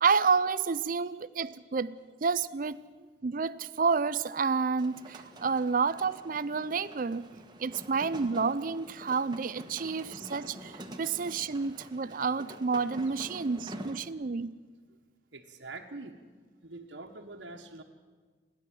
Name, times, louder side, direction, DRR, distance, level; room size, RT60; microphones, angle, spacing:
voice 1, 0.0-2.8 3.2-7.3 7.6-10.7 11.0-14.5, right 5 dB, 45° right, 16 dB, 0.5 m, -29 dB
sound 1, 4.8-14.0, right 1 dB, 25° right, 1.4 m, -47 dB
voice 2, 15.3-16.2 16.6-17.8, right 3 dB, 85° right, 0 dB, 1.5 m, -44 dB
29.5 x 11.5 x 7.7 m, 1.5 s
head